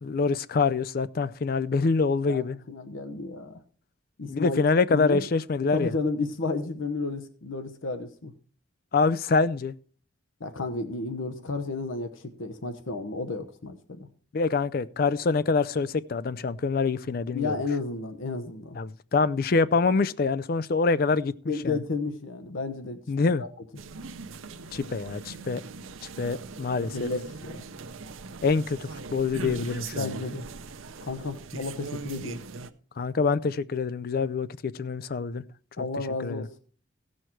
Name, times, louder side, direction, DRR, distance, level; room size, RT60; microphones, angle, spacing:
voice 1, 0.0-2.6 4.3-5.9 8.9-9.7 14.3-17.5 18.8-21.3 21.6-21.8 23.1-23.4 24.7-25.6 26.2-27.1 28.4-30.2 33.0-35.4 36.2-36.5, left 4 dB, 45° left, 0.4 m, -25 dB
voice 2, 2.3-3.6 4.2-4.6 4.9-5.2 5.7-8.3 10.4-14.0 17.3-18.8 21.5-23.0 23.4-23.5 26.9-27.6 29.9-30.5 31.0-32.4 35.8-36.5, left 3 dB, 80° left, 0.9 m, -32 dB
sound 1, 23.8-32.7, right 4 dB, 85° right, 0.7 m, -40 dB
15.5 x 6.4 x 4.5 m
head